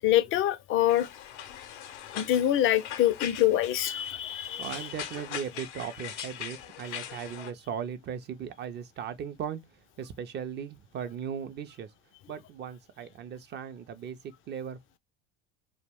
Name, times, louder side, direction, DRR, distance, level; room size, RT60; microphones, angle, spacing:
voice 1, 0.0-1.1 2.2-4.9, left 12 dB, 40° left, 0.4 m, -25 dB
sound 1, 0.9-7.5, left 10 dB, 80° left, 0.6 m, -41 dB
voice 2, 4.6-9.6 10.0-11.9 12.3-14.2 14.5-14.8, right 8 dB, 30° right, 0.4 m, -37 dB
2.3 x 2.1 x 3.3 m
hypercardioid pair, 75°, 34 cm